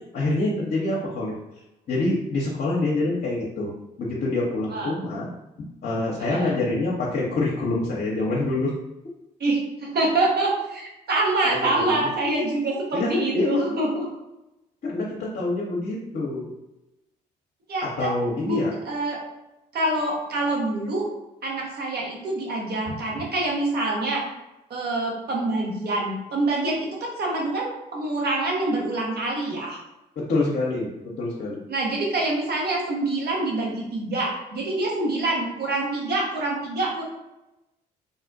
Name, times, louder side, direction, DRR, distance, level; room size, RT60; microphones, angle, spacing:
voice 1, 0.1-1.3 1.9-3.7 4.0-5.3 5.8-8.8 11.4-12.1 12.9-13.8 14.8-16.5 17.8-18.7 30.2-30.9 31.2-31.6, left 2 dB, 50° left, -4 dB, 0.7 m, -26 dB
voice 2, 6.2-6.6 9.4-14.1 17.7-18.1 18.4-19.2 19.7-21.0 21.4-24.2 24.7-29.8 31.7-37.0, right 2 dB, 50° right, -3 dB, 1.1 m, -26 dB
3.8 x 2.1 x 2.6 m, 0.94 s
hypercardioid pair, 45°, 21 cm